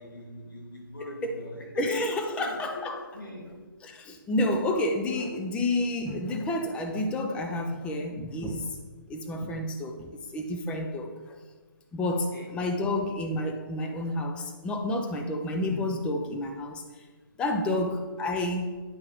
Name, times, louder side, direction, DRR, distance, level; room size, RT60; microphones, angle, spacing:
voice 1, 0.0-1.9 2.3-3.5 12.3-12.5 17.7-17.9, left 1 dB, 65° left, -1 dB, 2.6 m, -42 dB
voice 2, 1.8-3.0 3.8-8.8 9.1-11.4 11.9-17.0 17.4-18.7, left 1 dB, 10° left, 4 dB, 0.6 m, -30 dB
9.4 x 5.7 x 4.6 m, 1.4 s
figure-of-eight pair, 140°, 12 cm